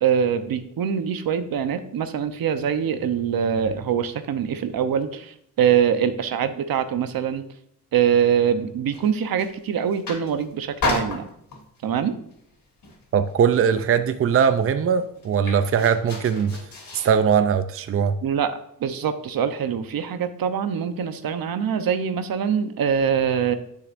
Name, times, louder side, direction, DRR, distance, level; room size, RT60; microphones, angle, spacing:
voice 1, 0.0-7.4 7.9-11.3 11.8-12.2 18.2-18.5 18.8-23.6, right 8 dB, 75° right, 9 dB, 0.8 m, -23 dB
sound 1, 8.9-9.6 9.9-10.4 10.8-11.8 12.3-12.6 12.8-13.7 14.0-14.1 14.3-17.2, left 3 dB, 70° left, 3.0 m, -32 dB
voice 2, 13.1-16.6 16.9-18.1, right 7 dB, 40° right, 10 dB, 0.5 m, -20 dB
10.0 x 6.7 x 2.6 m, 0.73 s
wide cardioid pair, 125°, 35 cm